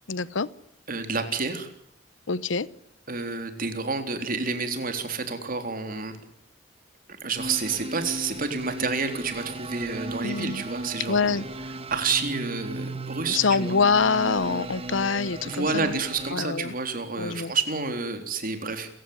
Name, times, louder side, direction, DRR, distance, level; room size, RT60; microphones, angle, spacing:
voice 1, 0.1-0.5 2.3-2.7 10.2-10.6 11.1-11.5 13.3-16.0 16.3-16.7 17.2-17.5, left 5 dB, 85° left, 19 dB, 1.0 m, -25 dB
voice 2, 0.9-1.7 3.1-6.2 7.2-11.4 11.9-13.8 15.4-18.9, right 4 dB, 50° right, 7 dB, 3.8 m, -29 dB
sound 1, 7.4-16.3, right 2 dB, 30° right, 1.9 m, -36 dB
29.0 x 15.5 x 9.5 m, 0.74 s
head